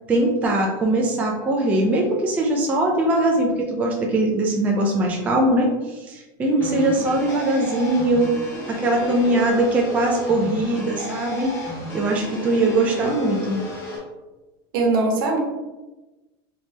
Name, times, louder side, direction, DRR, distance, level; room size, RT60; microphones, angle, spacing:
voice 1, 0.1-11.5 11.9-13.6, right 1 dB, 10° right, -1 dB, 0.3 m, -21 dB
voice 2, 6.5-6.9 14.7-15.4, right 2 dB, 65° right, 0 dB, 1.0 m, -21 dB
sound 1, 6.6-14.0, left 1 dB, 20° left, 0.8 m, -33 dB
3.2 x 2.7 x 3.1 m, 1.1 s
supercardioid pair, 165°, 12 cm